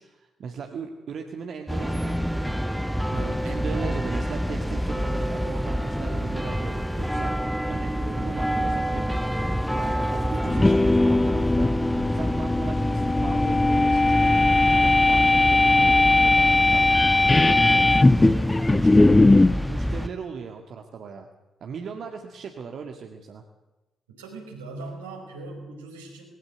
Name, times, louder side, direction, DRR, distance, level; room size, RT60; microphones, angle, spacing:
voice 1, 0.0-2.5 3.4-7.3 7.7-11.8 12.1-14.4 14.7-16.9 17.2-21.3 21.6-23.4, right 6 dB, 55° right, 4 dB, 2.0 m, -38 dB
sound 1, 1.7-20.1, equal, ahead, 1.4 m, -28 dB
voice 2, 3.1-3.5 24.1-26.2, right 3 dB, 80° right, 0 dB, 5.1 m, -40 dB
sound 2, 10.4-19.6, left 2 dB, 20° left, 0.7 m, -19 dB
20.5 x 18.0 x 8.1 m, 1.0 s
figure-of-eight pair, 40°, 0 cm